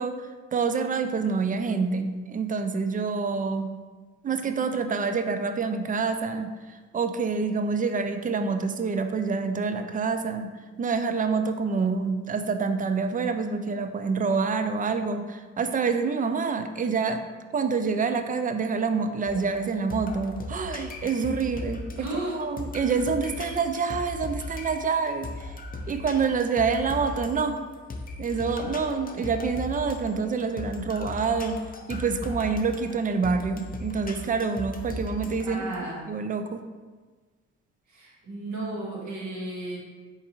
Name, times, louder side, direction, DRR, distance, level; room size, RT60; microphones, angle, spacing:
voice 1, 0.0-3.7 4.2-6.5 6.9-10.5 10.8-17.2 17.5-25.5 25.9-27.6 28.2-31.6 31.9-35.6 36.1-36.6, right 5 dB, 25° right, 8 dB, 0.4 m, -27 dB
sound 1, 19.3-35.8, left 2 dB, 25° left, 0.5 m, -38 dB
voice 2, 22.0-22.4 35.4-36.1 37.9-39.8, right 1 dB, 60° right, -4 dB, 1.5 m, -34 dB
4.3 x 3.5 x 2.9 m, 1.4 s
supercardioid pair, 65°, 33 cm